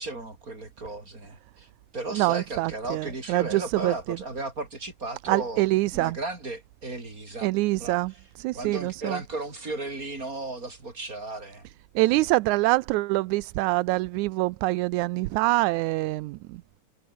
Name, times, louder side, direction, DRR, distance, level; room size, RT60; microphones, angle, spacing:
voice 1, 0.0-1.7 1.9-5.7 5.9-7.5 7.8-8.3 8.5-11.7 12.0-12.2, right 2 dB, 25° right, 5.8 m, -35 dB
voice 2, 2.1-3.9 5.3-6.2 7.4-9.2 12.0-16.6, right 20 dB, 80° right, 1.9 m, -25 dB
omnidirectional pair, 3.6 m